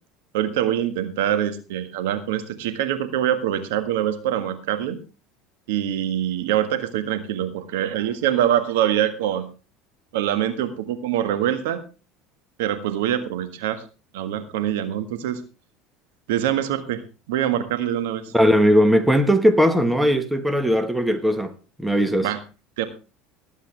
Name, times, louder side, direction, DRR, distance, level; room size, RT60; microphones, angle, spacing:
voice 1, 0.3-5.0 5.7-9.5 10.1-11.8 12.6-13.8 14.1-15.4 16.3-17.0 17.3-18.3 22.2-22.4 22.8-22.9, right 11 dB, 85° right, 1.6 m, -24 dB
voice 2, 18.3-21.5 21.8-22.3, equal, 5° right, 1.5 m, -18 dB
19.5 x 8.3 x 3.4 m
supercardioid pair, 95°, 0 cm